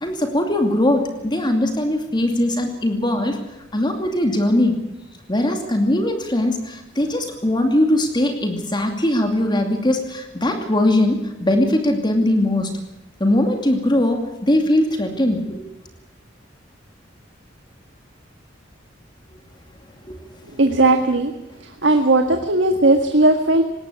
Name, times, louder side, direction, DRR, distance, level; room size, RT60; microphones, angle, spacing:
voice 1, 0.0-3.4 3.7-4.8 5.3-12.7 13.2-15.6 20.0-20.2 22.7-22.8, left 1 dB, 25° left, 5 dB, 2.5 m, -20 dB
voice 2, 20.6-21.3 21.8-23.6, right 2 dB, 75° right, 5 dB, 1.8 m, -16 dB
20.0 x 17.5 x 8.3 m, 0.89 s
head